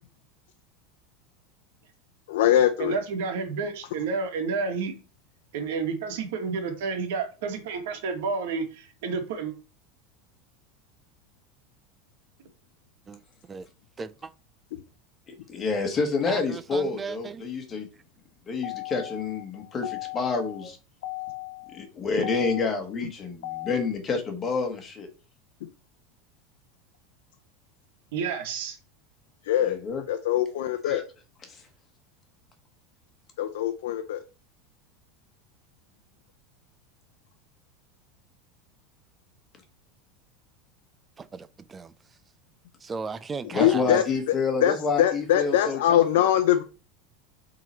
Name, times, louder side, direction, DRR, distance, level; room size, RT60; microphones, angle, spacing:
voice 1, 2.3-3.0 18.6-20.6 21.0-21.8 22.2-22.7 23.4-23.8 29.4-29.8 30.1-31.0 33.4-34.2 43.6-44.0 44.6-46.6, left 11 dB, 80° left, 0.7 m, -24 dB
voice 2, 2.8-4.9 5.5-9.5 20.6-20.7 28.1-28.8, right 5 dB, 75° right, 1.9 m, -30 dB
voice 3, 14.0-14.3 16.3-17.5 41.2-41.9 42.8-44.0, right 5 dB, 15° right, 0.4 m, -36 dB
voice 4, 15.5-17.9 18.5-20.8 21.7-25.1 29.6-30.0 30.8-31.0 31.5-31.6 43.5-46.0, left 4 dB, 20° left, 1.6 m, -28 dB
7.6 x 3.9 x 4.5 m
supercardioid pair, 160°, 0 cm